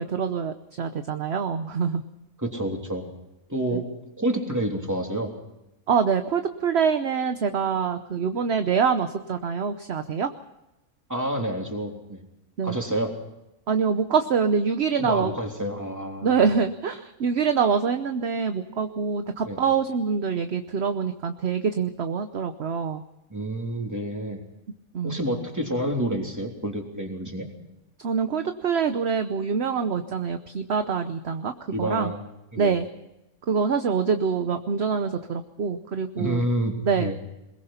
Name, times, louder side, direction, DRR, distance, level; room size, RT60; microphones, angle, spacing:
voice 1, 0.0-2.0 3.7-3.8 5.9-10.3 12.6-12.8 13.7-15.3 16.2-23.0 24.9-25.2 28.0-31.5 31.8-32.1 32.6-32.9 33.5-36.4 36.8-37.1, right 6 dB, 50° right, 8 dB, 1.1 m, -25 dB
voice 2, 2.4-3.1 3.5-3.8 4.2-5.3 11.1-12.2 12.6-13.1 15.0-16.4 19.4-19.6 23.3-24.4 25.0-27.5 31.7-32.2 32.5-32.7 36.2-37.2, right 1 dB, 10° right, 1 dB, 3.3 m, -28 dB
22.0 x 21.5 x 5.8 m, 0.92 s
omnidirectional pair, 1.5 m